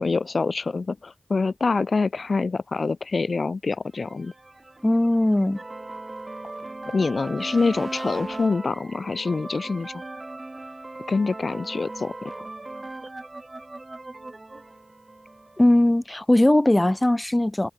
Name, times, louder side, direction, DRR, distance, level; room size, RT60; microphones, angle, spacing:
voice 1, 0.0-4.3 6.9-9.9 11.1-12.3, left 4 dB, 85° left, 1.1 m, -25 dB
sound 1, 4.0-15.8, right 2 dB, 45° right, 2.1 m, -38 dB
voice 2, 4.8-5.6 15.6-17.7, left 1 dB, 25° left, 0.9 m, -19 dB
wide cardioid pair, 55°, 0 cm